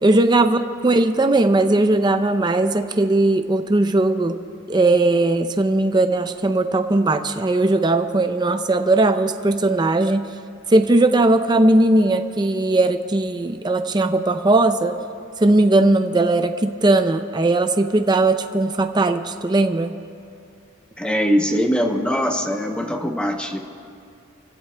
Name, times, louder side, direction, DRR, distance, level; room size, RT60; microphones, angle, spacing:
voice 1, 0.0-4.4 4.7-10.3 10.7-15.0 15.4-19.9, right 2 dB, 20° right, 7 dB, 0.5 m, -18 dB
voice 2, 21.0-23.6, equal, 5° left, 3 dB, 0.8 m, -22 dB
28.0 x 16.0 x 2.2 m, 2.5 s
head